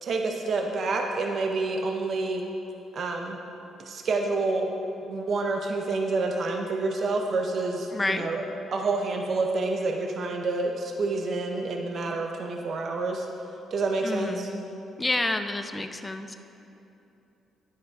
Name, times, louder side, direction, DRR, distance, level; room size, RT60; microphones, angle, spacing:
voice 1, 0.0-2.4 2.9-3.4 3.8-4.7 5.0-8.4 8.7-13.3 13.7-14.5, right 3 dB, 55° right, 2 dB, 0.5 m, -28 dB
voice 2, 7.9-8.3 14.0-14.6 15.0-16.4, left 2 dB, 20° left, 8 dB, 0.4 m, -29 dB
9.9 x 3.6 x 4.7 m, 2.8 s
cardioid pair, 90°, 0 cm